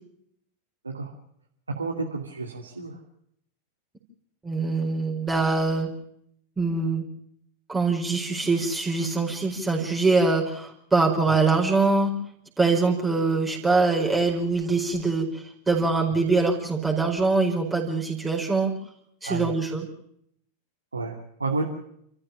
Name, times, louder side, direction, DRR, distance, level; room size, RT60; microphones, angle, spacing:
voice 1, 1.8-3.0 11.2-11.3 19.2-19.5 20.9-21.6, right 3 dB, 80° right, 0 dB, 2.7 m, -30 dB
voice 2, 4.4-5.9 6.6-7.0 7.7-12.1 12.6-18.7 19.2-19.9, right 3 dB, 10° right, 0 dB, 5.0 m, -23 dB
30.0 x 14.5 x 7.3 m, 0.71 s
figure-of-eight pair, 90°, 0 cm